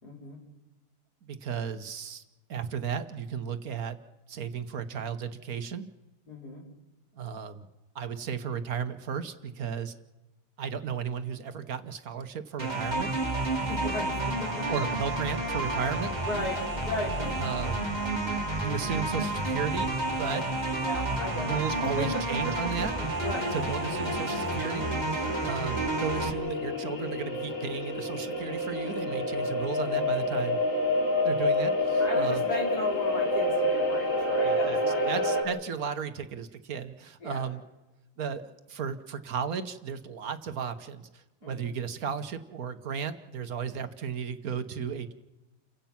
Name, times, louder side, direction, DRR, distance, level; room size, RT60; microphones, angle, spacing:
voice 1, 0.0-0.4 6.3-6.6 13.5-14.7 16.2-17.7 20.8-22.9 23.2-23.6 32.0-35.1 37.2-37.4 41.4-41.7, left 1 dB, 70° left, -1 dB, 5.6 m, -36 dB
voice 2, 1.3-2.2 2.5-4.0 4.3-5.9 7.2-7.7 7.9-9.9 10.6-13.1 14.7-16.1 17.4-17.9 18.6-20.5 21.4-22.9 23.5-30.6 31.2-32.4 34.4-34.8 35.1-37.6 38.2-45.1, right 7 dB, 65° right, 10 dB, 1.5 m, -34 dB
sound 1, 12.6-26.3, right 2 dB, 25° right, 2.7 m, -30 dB
sound 2, 21.0-21.1 21.3-21.4 21.7-35.4, left 1 dB, 50° left, 3.2 m, -29 dB
29.5 x 16.5 x 5.8 m, 1.1 s
omnidirectional pair, 1.8 m